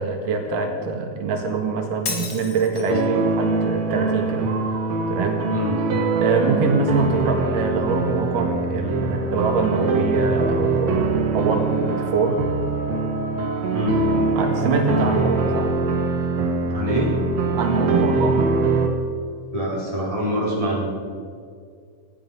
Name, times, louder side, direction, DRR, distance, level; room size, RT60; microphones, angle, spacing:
voice 1, 0.0-4.5 5.1-5.4 6.2-12.4 14.4-15.7 17.5-18.5, right 4 dB, 90° right, 3 dB, 3.4 m, -24 dB
Shatter, 2.1-3.0, left 5 dB, 45° left, 2.2 m, -31 dB
sound 1, 2.9-18.9, right 3 dB, 60° right, 2.7 m, -23 dB
sound 2, 3.9-7.1 7.8-15.2 17.2-18.6, equal, 35° right, 2.5 m, -37 dB
voice 2, 13.7-14.0 16.7-17.1 19.5-20.9, equal, 10° right, -5 dB, 4.6 m, -25 dB
18.5 x 14.0 x 5.5 m, 2.2 s
omnidirectional pair, 3.7 m